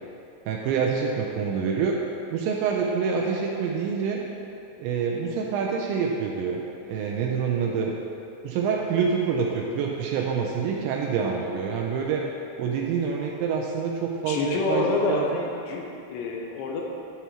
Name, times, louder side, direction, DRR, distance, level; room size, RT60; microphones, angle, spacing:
voice 1, 0.5-2.0 2.3-4.2 4.8-7.9 8.4-12.2 12.6-15.4, right 6 dB, 85° right, -1 dB, 2.8 m, -26 dB
voice 2, 14.3-16.8, left 3 dB, 85° left, 0 dB, 2.9 m, -27 dB
11.0 x 6.9 x 3.0 m, 2.6 s
omnidirectional pair, 5.3 m